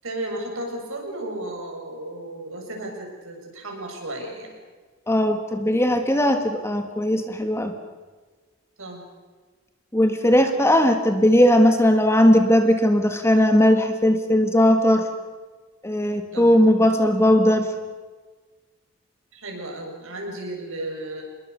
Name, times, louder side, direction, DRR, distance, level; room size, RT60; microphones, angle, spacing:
voice 1, 0.0-4.5 8.8-9.0 16.3-16.6 19.3-21.2, right 1 dB, 60° right, 1 dB, 7.1 m, -34 dB
voice 2, 5.1-7.7 9.9-15.1 15.8-17.7, left 1 dB, 10° left, 6 dB, 1.6 m, -18 dB
27.5 x 21.5 x 6.8 m, 1.4 s
head